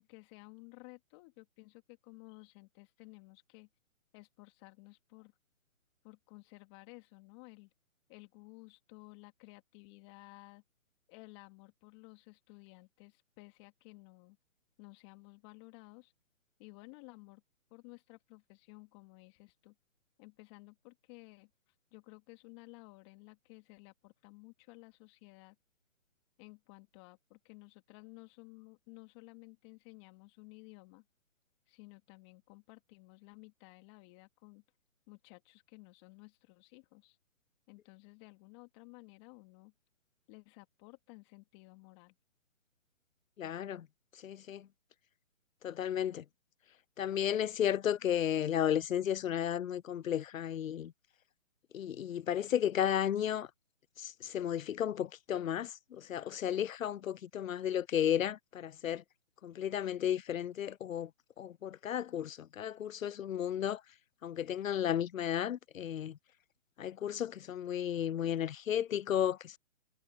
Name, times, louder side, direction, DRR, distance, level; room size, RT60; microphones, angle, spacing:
voice 1, 0.0-3.7 4.1-5.3 6.0-7.7 8.1-10.6 11.1-14.4 14.8-16.1 16.6-17.4 17.7-19.7 20.2-21.5 21.9-25.6 26.4-31.0 31.7-34.6 35.1-37.2 37.7-39.7 40.3-42.1, left 28 dB, 20° left, 3.0 m, -55 dB
voice 2, 43.4-43.9 44.2-44.7 45.6-46.2 47.0-50.9 51.7-53.5 54.0-59.0 59.4-61.1 61.4-63.8 64.2-66.2 66.8-69.6, left 10 dB, 85° left, 0.6 m, -33 dB
hypercardioid pair, 155°, 39 cm